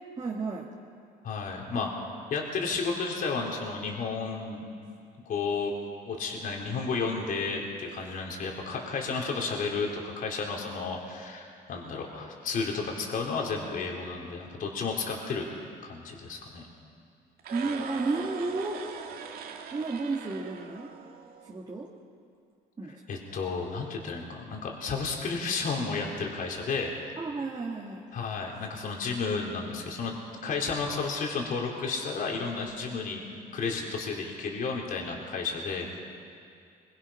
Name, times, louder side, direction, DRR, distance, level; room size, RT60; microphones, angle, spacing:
voice 1, 0.2-0.7 17.5-18.9 19.7-20.9 21.4-21.9 22.8-23.2 27.2-28.1, right 3 dB, 25° right, -3 dB, 2.4 m, -32 dB
voice 2, 1.2-1.9 2.3-4.7 5.3-5.8 6.1-15.4 15.8-16.7 23.1-26.9 28.1-30.1 30.4-33.2 33.5-36.0, left 4 dB, 55° left, 0 dB, 4.1 m, -32 dB
sound 1, 17.4-21.6, right 6 dB, 60° right, 2.2 m, -41 dB
24.0 x 23.0 x 5.9 m, 2.5 s
cardioid pair, 110°, 17 cm